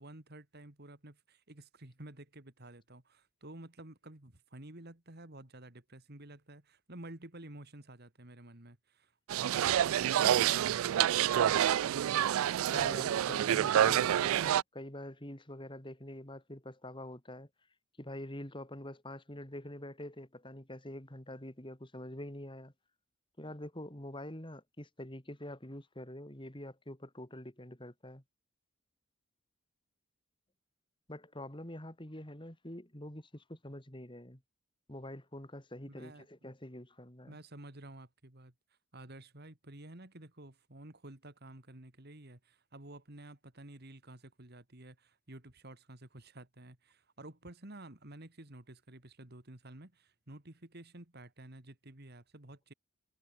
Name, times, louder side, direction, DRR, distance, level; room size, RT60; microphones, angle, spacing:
voice 1, 0.0-12.1 35.9-36.3 37.2-38.5 38.9-52.7, right 1 dB, 45° right, 2.3 m, -51 dB
sound 1, 9.3-14.6, right 10 dB, 70° right, 0.3 m, -28 dB
voice 2, 12.7-17.5 18.0-22.7 23.4-28.2 31.1-34.4 34.9-37.4, left 1 dB, 20° left, 3.0 m, -45 dB
head